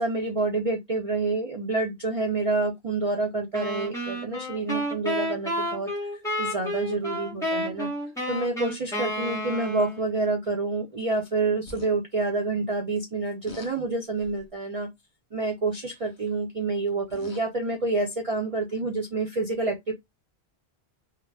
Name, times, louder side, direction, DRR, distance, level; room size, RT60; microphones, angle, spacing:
voice 1, 0.0-5.9 6.4-7.9 8.3-14.9 15.3-19.9, right 3 dB, 45° right, 0.5 m, -28 dB
sound 1, 3.5-10.1, equal, 5° left, 1.0 m, -31 dB
sound 2, 11.7-11.9 13.5-13.7 14.2-14.5 15.9-16.2 16.9-17.5 18.5-18.6, left 1 dB, 50° left, 0.8 m, -44 dB
2.3 x 2.1 x 3.2 m
omnidirectional pair, 1.1 m